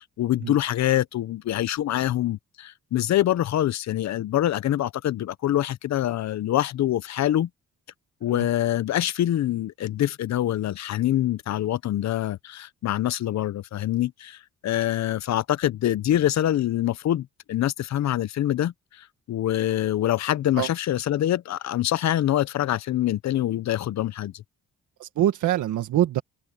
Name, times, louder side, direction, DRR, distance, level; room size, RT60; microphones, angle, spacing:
voice 1, 0.0-7.5 8.2-24.4, left 12 dB, 65° left, 0.9 m, -25 dB
voice 2, 25.0-26.2, right 12 dB, 75° right, 1.7 m, -24 dB
cardioid pair, 90°, 30 cm